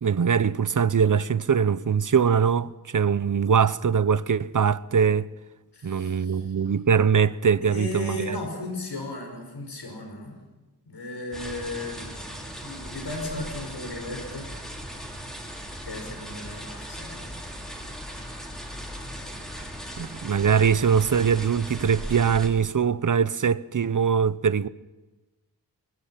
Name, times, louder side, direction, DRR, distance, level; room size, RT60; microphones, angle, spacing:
voice 1, 0.0-5.3 5.8-8.4 20.0-24.7, right 7 dB, 50° right, 0.8 m, -22 dB
voice 2, 5.7-6.5 7.6-10.4 10.8-14.5 15.8-17.3, left 2 dB, 90° left, 5.7 m, -36 dB
sound 1, 11.3-22.5, equal, ahead, 5.9 m, -38 dB
24.0 x 22.5 x 5.9 m
wide cardioid pair, 100°, 39 cm